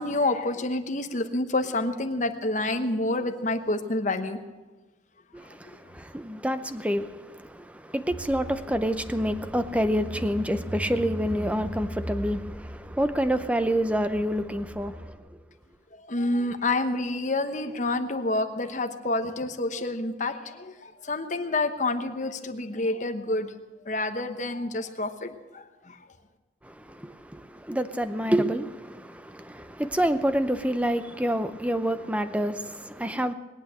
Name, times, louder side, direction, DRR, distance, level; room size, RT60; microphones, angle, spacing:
voice 1, 0.0-4.4 16.1-23.5 23.9-26.0, left 2 dB, 45° left, 1.1 m, -28 dB
voice 2, 5.3-15.2 26.6-33.3, equal, 5° right, 0.7 m, -28 dB
Car / Engine, 8.1-15.1, equal, 35° right, 1.6 m, -39 dB
21.0 x 8.8 x 7.7 m
head